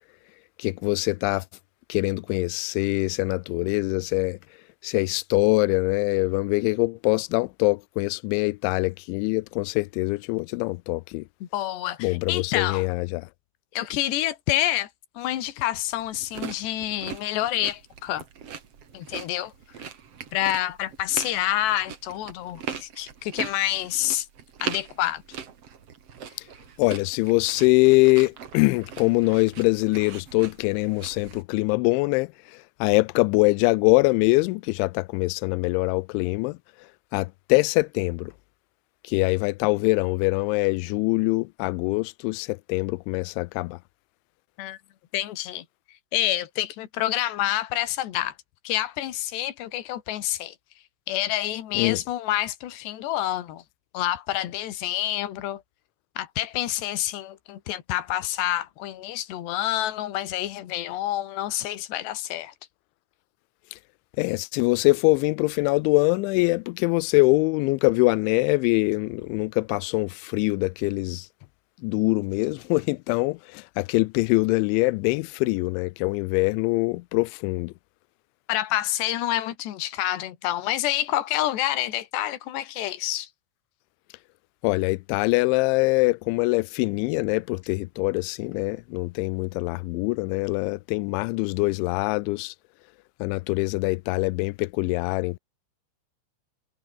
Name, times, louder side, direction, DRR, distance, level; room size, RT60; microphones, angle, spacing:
voice 1, 0.6-1.4 1.9-4.4 4.8-11.2 12.0-13.3 26.8-36.6 37.1-38.3 39.0-43.8 51.7-52.0 64.2-71.3 71.8-77.7 84.6-92.5 93.2-95.4, left 25 dB, 85° left, 2.7 m, -23 dB
voice 2, 11.4-12.9 13.7-14.9 15.2-18.2 18.9-19.5 20.3-24.3 24.6-25.2 44.6-44.8 45.1-45.7 46.1-48.3 48.7-50.6 51.1-53.6 53.9-55.6 56.2-62.5 78.5-83.3, left 13 dB, 60° left, 3.9 m, -28 dB
sound 1, 15.9-31.4, right 7 dB, 45° right, 2.2 m, -40 dB
omnidirectional pair, 5.9 m